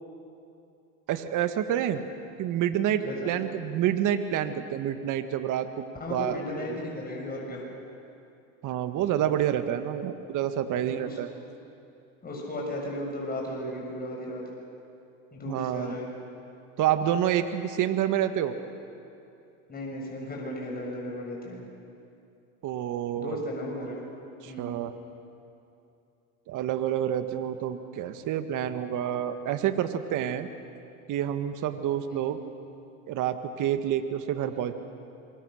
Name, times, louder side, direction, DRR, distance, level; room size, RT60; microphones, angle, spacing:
voice 1, 1.1-2.0 2.4-6.4 6.7-6.8 8.6-11.3 15.5-16.0 16.8-18.5 22.6-23.4 24.4-24.9 26.5-30.5 31.1-32.4 33.1-34.7, right 10 dB, 50° right, 9 dB, 1.8 m, -28 dB
voice 2, 6.0-7.6 10.7-11.2 12.2-14.4 15.3-16.1 19.7-21.6 23.2-24.0 24.5-24.8 32.1-32.2 34.4-34.6, left 1 dB, 25° left, -2 dB, 6.6 m, -35 dB
26.5 x 22.0 x 6.5 m, 2.7 s
hypercardioid pair, 95°, 40 cm